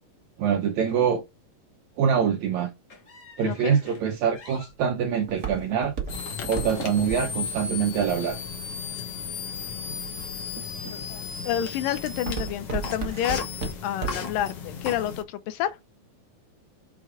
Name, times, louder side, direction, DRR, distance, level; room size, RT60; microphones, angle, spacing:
voice 1, 0.4-1.2 2.0-2.7 3.4-5.9 6.5-8.4 10.5-10.6, right 7 dB, 75° right, 1.8 m, -24 dB
sound 1, 2.9-4.1 4.3-4.7 6.1-7.3, left 2 dB, 70° left, 0.7 m, -44 dB
voice 2, 3.4-3.8 10.9-13.4 13.8-15.8, left 11 dB, 85° left, 2.5 m, -29 dB
Walk footsteps, 4.1-9.3 9.9-10.3 10.8-11.2 11.5-14.4 14.8-14.9, right 6 dB, 55° right, 0.9 m, -33 dB
sound 2, 6.1-15.2, left 6 dB, 55° left, 2.0 m, -35 dB
6.1 x 4.5 x 4.8 m
omnidirectional pair, 3.8 m